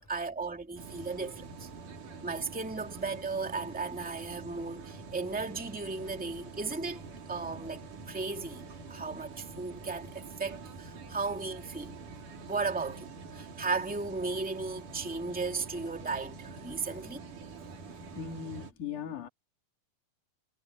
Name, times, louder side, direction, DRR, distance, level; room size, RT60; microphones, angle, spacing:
voice 1, 0.0-1.7 2.2-7.0 7.3-8.6 8.9-11.9 12.5-13.1 13.3-17.2, right 4 dB, 5° right, 1.8 m, -35 dB
sound 1, 0.8-18.7, right 4 dB, 60° right, 4.9 m, -46 dB
voice 2, 18.1-19.3, left 7 dB, 60° left, 4.2 m, -39 dB
omnidirectional pair, 4.1 m